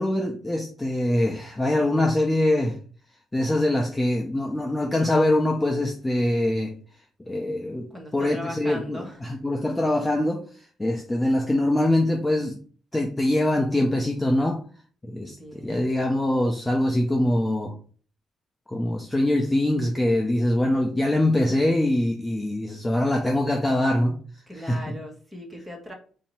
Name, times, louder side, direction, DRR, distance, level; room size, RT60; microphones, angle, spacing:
voice 1, 0.0-2.8 3.3-6.8 7.3-7.9 8.1-12.6 12.9-14.6 15.0-17.8 18.7-24.2 24.5-25.0, left 1 dB, 15° left, 0.6 m, -23 dB
voice 2, 7.9-9.2 15.2-15.9 24.5-25.9, left 1 dB, 5° right, 1.5 m, -39 dB
4.3 x 2.8 x 4.3 m
cardioid pair, 90°, 0 cm